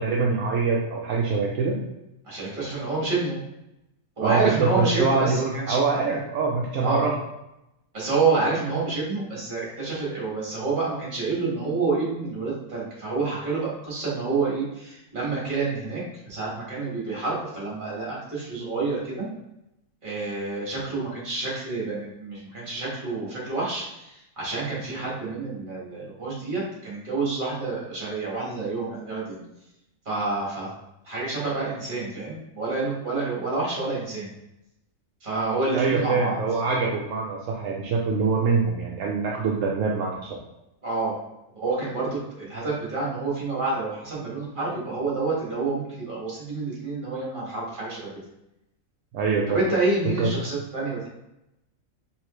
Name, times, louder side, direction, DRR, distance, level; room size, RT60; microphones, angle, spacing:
voice 1, 0.0-1.8 4.2-7.1 35.7-40.3 49.1-49.6 50.2-50.3, right 4 dB, 75° right, -2 dB, 1.0 m, -24 dB
voice 2, 2.2-3.4 4.2-6.2 6.8-7.1 7.9-19.3 20.0-29.4 30.1-30.7 31.1-34.3 35.2-36.4 40.8-41.2 41.5-48.1 49.5-51.1, right 3 dB, 35° right, -6 dB, 1.9 m, -28 dB
4.8 x 3.2 x 3.1 m, 0.88 s
omnidirectional pair, 1.4 m